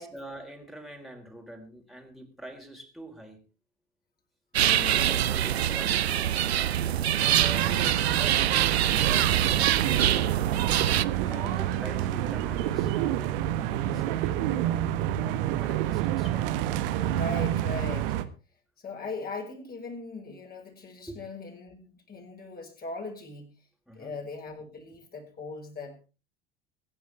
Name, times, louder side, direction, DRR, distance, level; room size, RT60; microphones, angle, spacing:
voice 1, 0.0-3.5 4.8-6.3 6.9-10.3 11.2-15.0 15.5-16.5 21.1-21.2 23.9-24.1, right 1 dB, ahead, 1 dB, 4.3 m, -45 dB
voice 2, 4.5-5.4 11.2-12.1 17.1-18.1 18.8-23.5 23.9-26.1, left 3 dB, 30° left, 1 dB, 5.9 m, -40 dB
sound 1, 4.5-11.0, right 11 dB, 75° right, 0.7 m, -25 dB
sound 2, 7.2-18.2, right 12 dB, 60° right, 1.5 m, -28 dB
23.5 x 10.5 x 3.5 m, 0.32 s
figure-of-eight pair, 75°, 32 cm